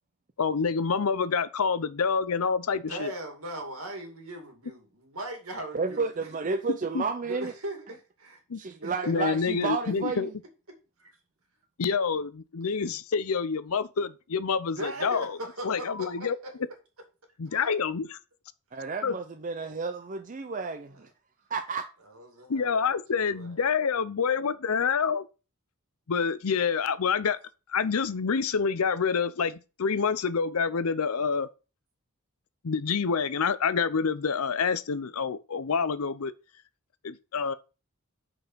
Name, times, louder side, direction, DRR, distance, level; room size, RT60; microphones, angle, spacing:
voice 1, 0.4-3.1 6.7-7.0 8.5-8.6 9.1-10.3 11.8-15.4 15.6-16.4 17.4-18.2 19.0-19.2 22.5-25.2 26.1-27.4 27.7-31.5 32.6-36.3 37.0-37.5, left 5 dB, 75° left, 0.6 m, -27 dB
voice 2, 2.9-6.3 7.2-8.4 8.8-9.1 11.0-11.1 14.6-16.5 17.5-17.7 18.7-18.9 20.9-21.0 22.1-23.5, right 1 dB, 70° right, 2.3 m, -40 dB
voice 3, 5.7-7.5 8.5-10.3 18.7-21.1 21.5-21.9, right 4 dB, 35° right, 0.5 m, -31 dB
6.0 x 5.4 x 5.5 m
head